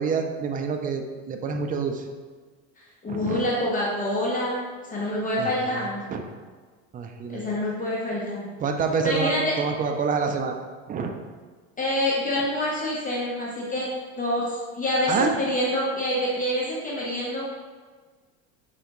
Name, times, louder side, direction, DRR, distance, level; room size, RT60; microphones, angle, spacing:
voice 1, 0.0-2.1 3.1-3.4 5.4-6.2 6.9-7.4 8.6-10.6 10.9-11.1 15.1-15.3, right 5 dB, 25° right, 4 dB, 0.3 m, -27 dB
voice 2, 2.8-6.0 7.3-8.5 9.0-9.5 11.8-13.9 14.2-17.5, left 1 dB, 20° left, -5 dB, 0.9 m, -26 dB
4.8 x 3.3 x 3.0 m, 1.5 s
supercardioid pair, 115°, 38 cm